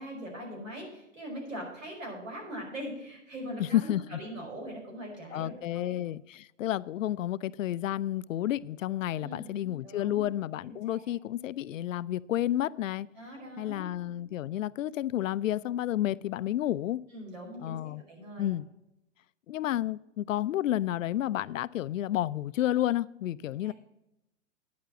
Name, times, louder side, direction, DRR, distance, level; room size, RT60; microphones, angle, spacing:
voice 1, 0.0-6.0 9.1-9.6 9.8-10.2 10.6-11.0 13.2-13.9 17.1-18.5 23.6-23.7, equal, 85° right, 5.2 m, -41 dB
voice 2, 3.6-4.2 5.3-13.1 13.6-17.0 17.6-18.0 18.4-18.7 19.5-23.7, left 13 dB, 80° left, 0.5 m, -31 dB
9.4 x 6.8 x 7.5 m
hypercardioid pair, 130°, 38 cm